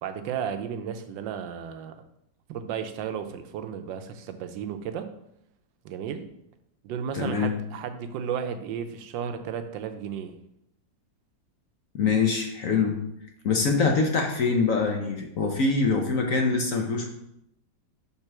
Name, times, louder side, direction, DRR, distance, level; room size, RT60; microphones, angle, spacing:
voice 1, 0.0-2.0 2.5-5.1 5.8-6.3 6.8-10.4, right 8 dB, 85° right, 8 dB, 1.3 m, -33 dB
voice 2, 7.1-7.5 11.9-13.0 13.4-17.1, left 4 dB, 60° left, 3 dB, 1.0 m, -24 dB
5.5 x 3.7 x 5.9 m, 0.79 s
omnidirectional pair, 1.9 m